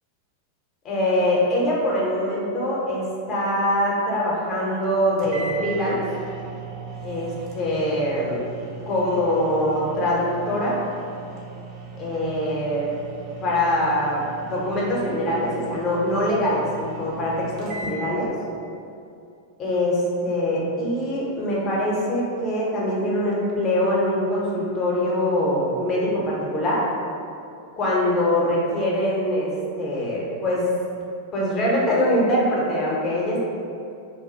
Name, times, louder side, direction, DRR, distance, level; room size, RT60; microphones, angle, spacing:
voice 1, 0.8-6.0 7.0-8.4 8.8-10.8 12.0-12.9 13.4-18.3 19.6-26.8 27.8-29.5 29.8-30.7 31.3-33.4, left 1 dB, 30° left, -5 dB, 0.7 m, -23 dB
sound 1, 4.8-4.9 5.2-18.0, right 4 dB, 35° right, 0.5 m, -38 dB
2.3 x 2.2 x 3.8 m, 2.5 s
figure-of-eight pair, 90°, 0 cm